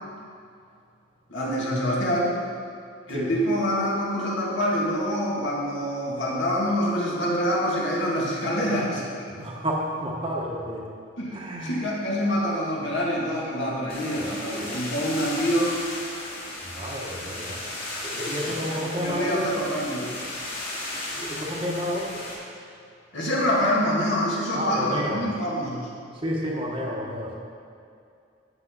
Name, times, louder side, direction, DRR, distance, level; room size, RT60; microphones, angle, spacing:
voice 1, 1.3-2.4 3.1-9.0 11.2-16.1 18.4-20.4 23.1-25.9, equal, 65° left, -4 dB, 2.4 m, -26 dB
voice 2, 9.3-10.8 11.3-11.8 14.1-14.3 14.5-14.8 16.7-17.6 18.0-19.4 21.1-22.2 24.5-25.2 26.2-27.3, equal, 25° right, -2 dB, 1.2 m, -30 dB
sound 1, 13.9-22.3, left 1 dB, 45° left, 2.6 m, -35 dB
12.0 x 8.8 x 4.0 m, 2.4 s
head